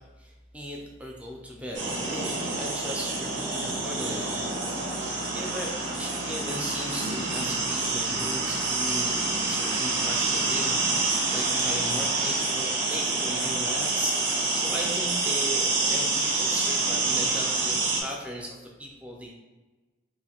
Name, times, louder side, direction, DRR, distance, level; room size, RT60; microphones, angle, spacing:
voice 1, 0.2-4.4 4.9-9.1 9.4-19.3, equal, 5° right, 0 dB, 0.4 m, -37 dB
sound 1, 1.7-18.0, right 3 dB, 65° right, 0.6 m, -27 dB
3.0 x 2.5 x 2.8 m, 1.2 s
head